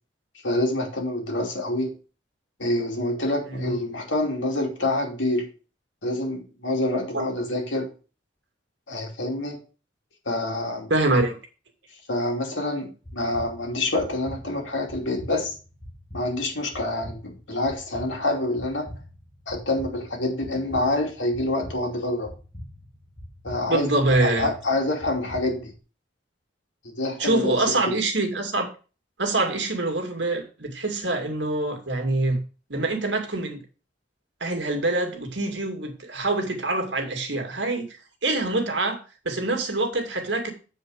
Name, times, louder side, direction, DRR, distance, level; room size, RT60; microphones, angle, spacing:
voice 1, 0.4-1.9 2.6-5.5 6.0-7.9 8.9-9.6 10.3-10.9 12.1-15.6 16.1-18.9 19.5-22.3 23.4-25.7 26.8-27.5, left 2 dB, 90° left, 2.7 m, -27 dB
voice 2, 10.9-11.4 23.7-24.5 27.2-28.7 29.2-32.4 32.7-33.6 34.4-39.0 39.2-40.5, right 2 dB, 70° right, 2.3 m, -25 dB
sound 1, 13.0-25.8, equal, 30° left, 2.2 m, -43 dB
8.2 x 5.0 x 6.4 m
head